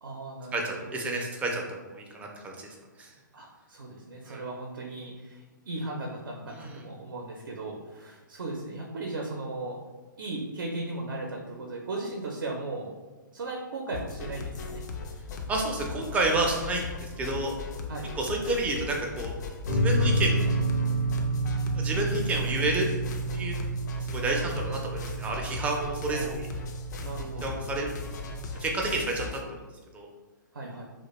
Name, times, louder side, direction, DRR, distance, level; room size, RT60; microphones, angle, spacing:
voice 1, 0.0-0.9 3.3-9.8 10.2-12.9 13.3-14.8 17.9-18.1 26.1-26.4 27.0-27.6 30.5-30.8, right 2 dB, 75° right, -1 dB, 0.5 m, -37 dB
voice 2, 0.5-2.7 3.0-3.1 4.3-4.4 6.5-6.8 15.5-17.5 18.2-19.3 19.7-20.4 21.7-22.9 23.3-23.6 23.9-26.5 27.4-27.9 28.6-29.4 29.9-30.1, right 2 dB, 15° right, 0 dB, 0.4 m, -30 dB
sound 1, 13.9-29.4, left 4 dB, 60° left, 0.4 m, -38 dB
sound 2, 19.6-28.6, right 2 dB, 85° left, 0.8 m, -30 dB
2.3 x 2.1 x 2.9 m, 1.3 s
hypercardioid pair, 125°, 11 cm